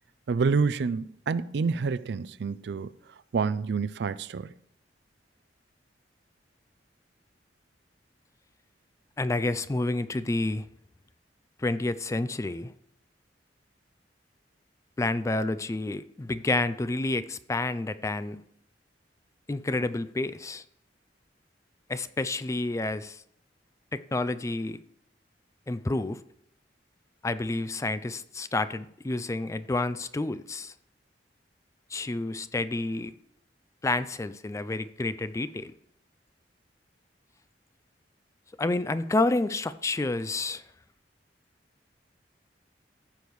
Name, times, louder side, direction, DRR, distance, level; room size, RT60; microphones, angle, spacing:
voice 1, 0.3-2.9 3.3-4.5, right 4 dB, 65° right, 0.4 m, -28 dB
voice 2, 9.2-10.6 11.6-12.7 15.0-18.4 19.5-20.6 21.9-23.2 23.9-24.8 25.7-26.2 27.2-30.7 31.9-33.1 33.8-35.7 38.6-40.6, left 2 dB, 15° left, 0.3 m, -29 dB
14.5 x 6.6 x 3.1 m
head